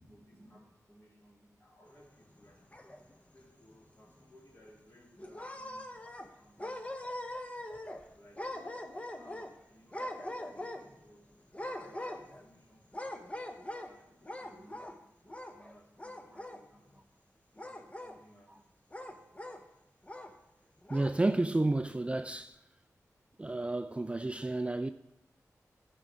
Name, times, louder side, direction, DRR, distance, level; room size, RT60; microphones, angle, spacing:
voice 1, 0.0-2.6 3.1-5.9 6.4-6.7 8.1-8.7 9.1-11.3 11.8-13.4 13.8-15.0 15.5-17.0 17.3-18.7, equal, 40° left, 3.0 m, -60 dB
sound 1, 2.4-3.3 3.7-3.8 4.2-4.3 5.2-6.3 6.6-8.0 8.4-9.5 9.9-11.0 11.5-12.5 12.9-13.9 14.2-15.0 15.3-15.7 16.0-16.6 17.6-18.2 18.9-19.6 20.1-20.3 20.8-21.2, left 1 dB, 20° left, 0.8 m, -42 dB
voice 2, 20.9-22.6 23.4-24.9, right 2 dB, 20° right, 0.3 m, -31 dB
11.5 x 5.1 x 4.8 m
cardioid pair, 55°, 6 cm